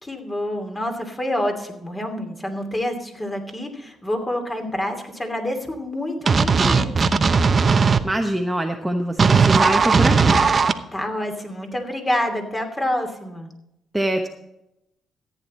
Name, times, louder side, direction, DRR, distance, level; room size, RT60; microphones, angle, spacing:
voice 1, 0.0-7.2 10.9-13.5, left 1 dB, 20° left, 4 dB, 2.7 m, -27 dB
sound 1, 6.3-8.0 9.2-10.7, right 5 dB, 35° right, 0.8 m, -17 dB
voice 2, 8.0-10.4 13.9-14.3, right 1 dB, 10° right, 3 dB, 1.0 m, -24 dB
14.0 x 9.4 x 4.3 m, 0.84 s
cardioid pair, 90°, 0 cm